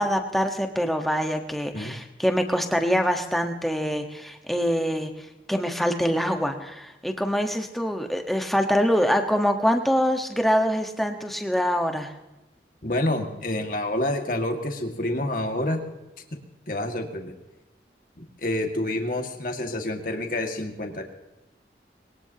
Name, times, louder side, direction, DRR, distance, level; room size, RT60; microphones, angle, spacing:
voice 1, 0.0-5.1 5.5-12.1, equal, ahead, 4 dB, 1.3 m, -24 dB
voice 2, 12.8-15.8 16.7-17.3 18.2-21.0, left 1 dB, 50° left, 3 dB, 2.0 m, -28 dB
22.0 x 18.0 x 2.9 m, 1.0 s
head